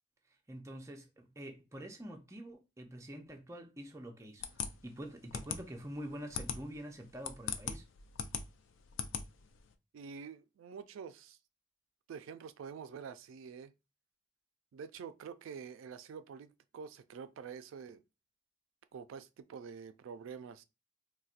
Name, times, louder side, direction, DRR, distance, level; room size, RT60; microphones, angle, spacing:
voice 1, 0.5-7.9, equal, 15° right, 0.4 m, -46 dB
sound 1, 4.4-9.7, left 7 dB, 75° left, 0.4 m, -40 dB
voice 2, 9.9-11.4 12.1-13.7 14.7-18.0 18.9-20.6, right 6 dB, 85° right, 0.3 m, -47 dB
4.0 x 2.1 x 2.4 m
head